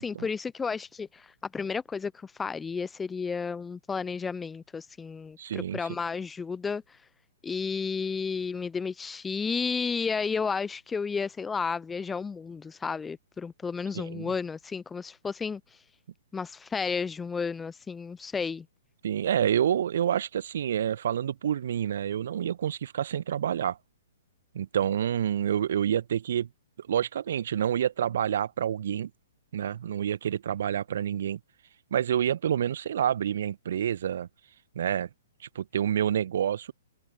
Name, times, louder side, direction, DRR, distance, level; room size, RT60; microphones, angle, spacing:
voice 1, 0.0-7.0 7.4-15.6 16.3-18.7, left 5 dB, 10° left, 0.6 m, -32 dB
voice 2, 5.4-5.8 13.9-14.3 19.0-23.8 24.5-26.5 26.8-29.1 29.5-31.4 31.9-34.3 34.7-35.1 35.5-36.7, right 9 dB, 55° right, 1.6 m, -28 dB
figure-of-eight pair, 115°, 0 cm